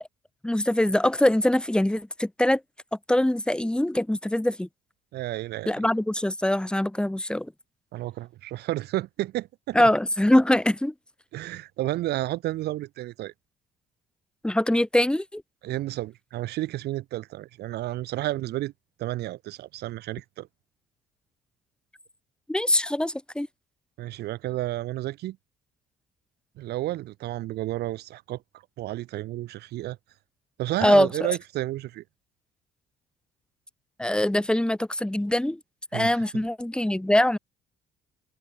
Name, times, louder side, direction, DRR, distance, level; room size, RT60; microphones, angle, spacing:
voice 1, 0.4-2.6 3.1-4.7 5.7-7.5 9.7-10.9 14.4-15.4 22.5-23.5 30.8-31.3 34.0-35.6 35.9-37.4, left 1 dB, 5° left, 3.3 m, -23 dB
voice 2, 5.1-5.7 7.9-9.9 11.3-13.3 15.6-18.7 19.0-20.5 24.0-25.4 26.6-28.4 28.8-30.0 30.6-32.0 35.9-36.2, right 16 dB, 75° right, 1.8 m, -31 dB
cardioid pair, 110°, 17 cm